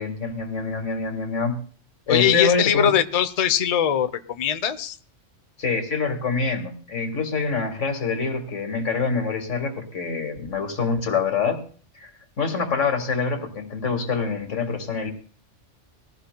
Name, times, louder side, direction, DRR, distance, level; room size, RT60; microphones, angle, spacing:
voice 1, 0.0-1.6 2.1-2.9 5.6-11.6 12.0-12.1 12.4-15.1, left 5 dB, 80° left, 5 dB, 2.1 m, -25 dB
voice 2, 2.1-5.0, left 9 dB, 40° left, 11 dB, 0.6 m, -21 dB
20.0 x 15.5 x 2.2 m, 0.43 s
omnidirectional pair, 1.2 m